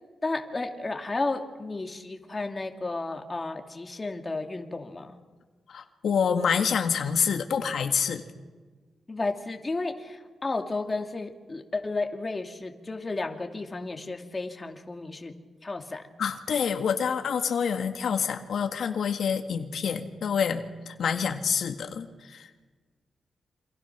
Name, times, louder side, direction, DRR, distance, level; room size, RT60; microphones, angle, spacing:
voice 1, 0.2-5.2 9.1-15.3 15.6-16.0, left 3 dB, 25° left, 4 dB, 2.5 m, -33 dB
voice 2, 5.7-8.2 16.2-22.5, left 7 dB, 75° left, 6 dB, 1.9 m, -27 dB
28.5 x 26.5 x 6.1 m, 1.3 s
cardioid pair, 105°, 0 cm